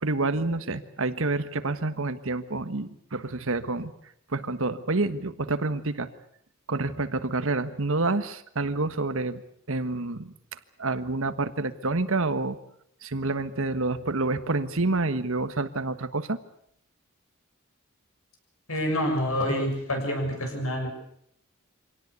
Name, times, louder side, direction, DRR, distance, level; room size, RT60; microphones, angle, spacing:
voice 1, 0.0-3.9 4.3-6.1 6.7-9.4 9.7-12.6 13.0-16.4, right 3 dB, 65° right, 12 dB, 1.4 m, -28 dB
voice 2, 18.7-20.9, equal, 80° left, 4 dB, 6.9 m, -27 dB
25.5 x 18.0 x 8.3 m, 0.71 s
head